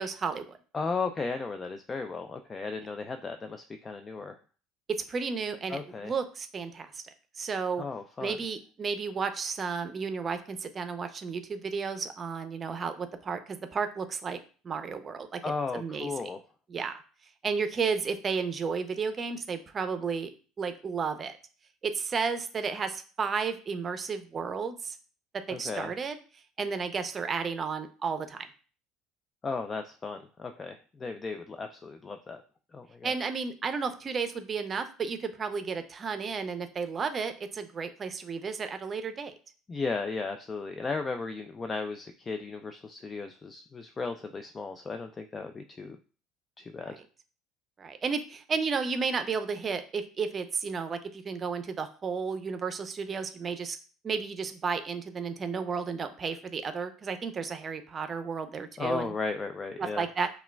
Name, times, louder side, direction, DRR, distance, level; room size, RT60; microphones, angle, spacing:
voice 1, 0.0-0.6 4.9-7.8 8.2-14.4 14.6-15.4 15.7-16.1 16.7-17.0 17.4-20.3 20.6-21.4 21.8-25.0 25.5-26.2 26.6-28.5 33.0-39.3 46.8-46.9 47.8-53.8 54.0-59.1 59.8-60.3, right 5 dB, 35° right, 9 dB, 0.5 m, -33 dB
voice 2, 0.7-4.4 5.7-6.1 7.8-8.4 15.4-16.4 25.5-25.9 29.4-32.4 32.7-33.2 39.7-46.0 46.6-47.0 58.8-60.1, left 4 dB, 30° left, 7 dB, 0.3 m, -35 dB
5.6 x 2.3 x 2.2 m, 0.39 s
hypercardioid pair, 80°, 0 cm